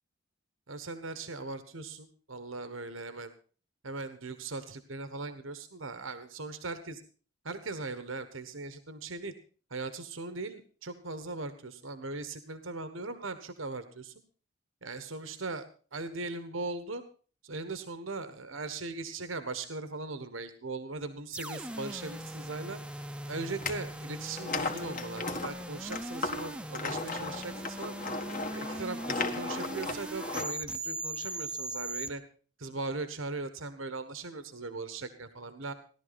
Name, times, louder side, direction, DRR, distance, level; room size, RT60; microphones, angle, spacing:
voice 1, 0.7-3.3 3.8-7.0 7.4-9.3 9.7-14.1 14.8-17.0 17.4-22.8 23.3-27.9 28.5-32.2 32.6-35.7, right 3 dB, 80° right, 10 dB, 1.4 m, -39 dB
sound 1, 21.3-32.1, right 1 dB, 5° right, 0.8 m, -40 dB
sound 2, 23.5-23.8 24.3-30.6, left 3 dB, 45° left, 1.7 m, -36 dB
17.0 x 12.0 x 4.1 m, 0.40 s
head